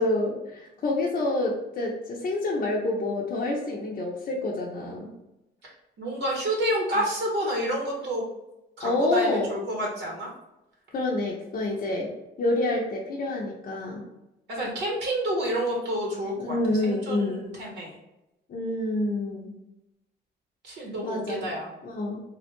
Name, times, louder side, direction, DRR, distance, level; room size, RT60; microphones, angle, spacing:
voice 1, 0.0-5.1 8.8-9.5 10.9-12.1 12.4-14.0 16.4-17.5 18.5-19.5 21.0-21.5 21.8-22.2, left 2 dB, 45° left, -3 dB, 0.6 m, -27 dB
voice 2, 6.0-8.3 8.8-10.3 14.5-16.5 16.8-18.0 20.6-21.7, right 1 dB, 65° right, -2 dB, 0.9 m, -29 dB
3.3 x 2.1 x 2.9 m, 0.92 s
cardioid pair, 90°, 20 cm